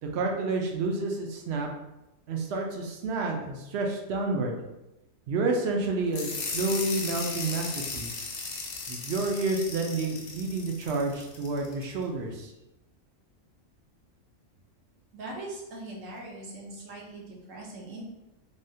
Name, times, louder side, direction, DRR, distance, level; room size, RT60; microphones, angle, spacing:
voice 1, 0.0-1.7 2.3-4.6 5.3-8.3 8.9-12.5, right 3 dB, 65° right, 1 dB, 0.7 m, -29 dB
sound 1, 6.1-11.9, left 4 dB, 65° left, 0.8 m, -36 dB
voice 2, 15.1-18.0, right 2 dB, 80° right, -2 dB, 1.2 m, -41 dB
3.4 x 2.2 x 2.6 m, 0.95 s
omnidirectional pair, 1.3 m